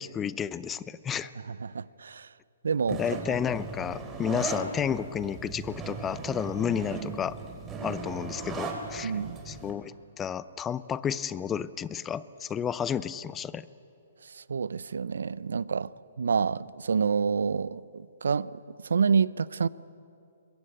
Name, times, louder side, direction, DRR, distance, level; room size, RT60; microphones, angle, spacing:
voice 1, 0.0-1.3 2.9-7.4 7.8-9.1 9.5-13.6, left 8 dB, 15° left, 17 dB, 0.6 m, -31 dB
voice 2, 1.5-2.3 2.6-3.0 4.3-4.5 9.0-9.3 14.4-15.9 16.2-18.5 18.8-19.7, right 6 dB, 80° right, 19 dB, 0.6 m, -28 dB
sound 1, 2.9-9.7, right 4 dB, 20° right, 4.0 m, -37 dB
22.5 x 21.0 x 8.7 m, 2.6 s
hypercardioid pair, 135°, 0 cm